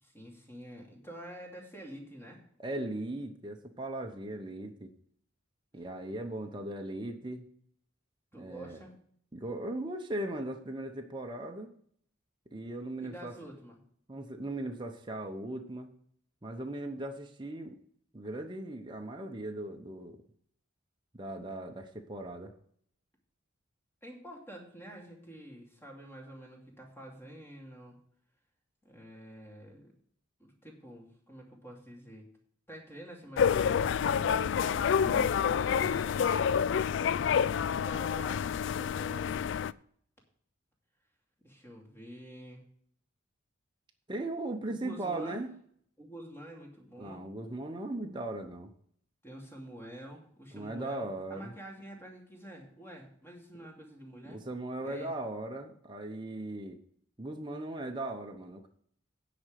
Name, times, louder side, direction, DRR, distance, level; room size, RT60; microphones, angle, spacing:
voice 1, 0.0-2.4 8.3-9.0 13.0-13.8 24.0-28.0 28.8-29.9 30.4-32.3 32.7-34.9 35.7-38.5 38.8-39.5 41.4-42.6 44.7-45.4 46.0-47.3 49.2-54.5 54.8-55.1, right 1 dB, 10° left, 0 dB, 2.6 m, -48 dB
voice 2, 2.6-4.9 5.7-7.5 8.4-8.8 9.3-11.7 12.5-13.3 14.1-15.9 16.4-17.8 18.1-20.2 21.1-22.5 35.0-36.0 44.1-45.5 47.0-48.7 50.5-51.5 54.3-56.8 57.2-58.7, right 1 dB, 25° right, 3 dB, 0.9 m, -38 dB
sound 1, 33.4-39.7, left 7 dB, 60° left, 0.3 m, -28 dB
9.6 x 5.1 x 7.5 m, 0.62 s
head